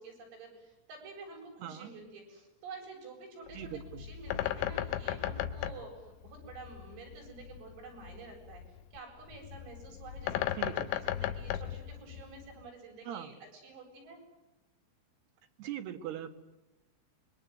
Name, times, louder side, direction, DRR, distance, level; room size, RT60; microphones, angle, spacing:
voice 1, 0.0-3.6 3.9-8.6 8.9-10.5 10.9-14.2, right 4 dB, 85° right, 1 dB, 11.0 m, -49 dB
Bird, 3.5-12.6, left 12 dB, 75° left, 3.5 m, -37 dB
voice 2, 3.5-4.0 10.6-10.9 13.0-13.3 15.6-16.3, right 10 dB, 65° right, 9 dB, 3.2 m, -40 dB
26.0 x 23.5 x 9.4 m, 0.98 s
omnidirectional pair, 5.8 m